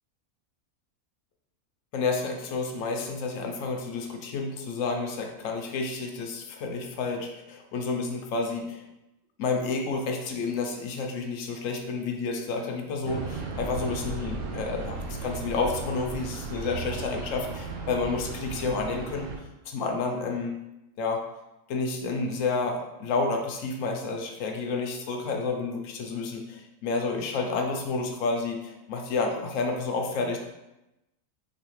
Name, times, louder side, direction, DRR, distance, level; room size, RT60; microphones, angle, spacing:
voice 1, 1.9-8.8 9.4-19.3 19.7-20.6 21.0-21.2 21.7-30.4, left 4 dB, 70° left, 3 dB, 0.9 m, -30 dB
sound 1, 13.0-19.4, right 3 dB, 70° right, 0.9 m, -36 dB
4.0 x 2.7 x 3.0 m, 0.93 s
omnidirectional pair, 1.5 m